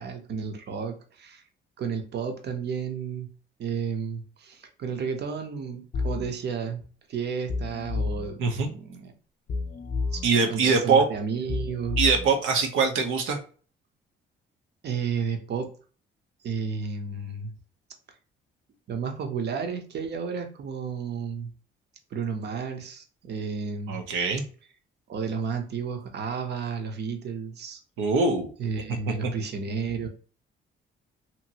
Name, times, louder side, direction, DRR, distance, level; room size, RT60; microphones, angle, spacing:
voice 1, 0.0-1.4 1.8-3.3 3.6-6.8 7.1-9.1 10.1-10.2 10.5-12.0 14.8-15.7 16.4-17.5 18.9-21.5 22.1-24.0 25.1-27.8 28.6-30.1, right 6 dB, 55° right, 5 dB, 0.7 m, -32 dB
sound 1, 5.9-6.3 7.5-8.3 9.5-10.3 11.5-12.3, left 4 dB, 40° left, 0.4 m, -30 dB
voice 2, 8.4-8.7 10.2-11.1 12.0-13.4 23.9-24.4 28.0-28.5 29.2-29.3, right 4 dB, 90° right, 4 dB, 0.7 m, -23 dB
2.9 x 2.6 x 2.8 m, 0.40 s
cardioid pair, 90°, 20 cm